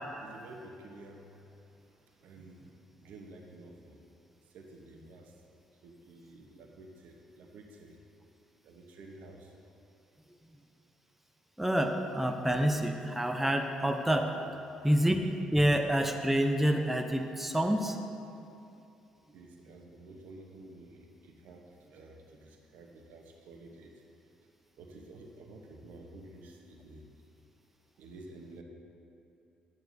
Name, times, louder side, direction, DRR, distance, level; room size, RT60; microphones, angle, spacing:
voice 1, 0.2-1.3 2.2-2.6 3.0-4.0 4.5-5.3 5.8-8.0 8.6-9.5 19.3-21.6 21.9-23.9 24.8-27.0 28.0-28.6, right 2 dB, 65° right, 2 dB, 1.0 m, -51 dB
voice 2, 11.6-14.3 14.8-18.0, right 1 dB, 5° right, 4 dB, 0.7 m, -28 dB
11.0 x 9.0 x 2.7 m, 2.6 s
hypercardioid pair, 45°, 3 cm